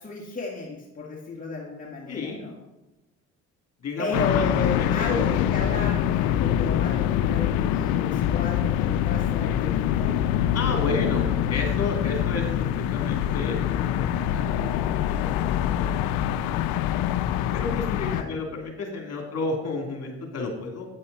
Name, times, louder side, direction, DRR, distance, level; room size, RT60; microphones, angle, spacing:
voice 1, 0.0-2.5 4.0-10.2 18.1-18.3, left 3 dB, 25° left, -3 dB, 2.0 m, -33 dB
voice 2, 2.1-2.4 3.8-5.3 10.5-16.5 16.8-17.0 17.5-20.9, left 3 dB, 45° left, 1 dB, 3.0 m, -32 dB
sound 1, 4.1-18.2, left 10 dB, 85° left, 0.6 m, -24 dB
9.5 x 8.6 x 4.1 m, 0.96 s
supercardioid pair, 70°, 34 cm